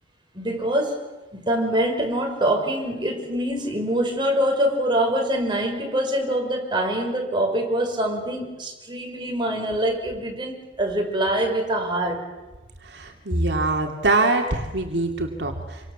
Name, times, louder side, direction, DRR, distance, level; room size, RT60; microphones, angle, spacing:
voice 1, 0.3-1.1 1.3-12.2, right 1 dB, 25° right, 2 dB, 6.0 m, -24 dB
voice 2, 12.9-15.8, right 3 dB, 75° right, 3 dB, 2.9 m, -24 dB
28.0 x 25.5 x 7.5 m, 1.1 s
head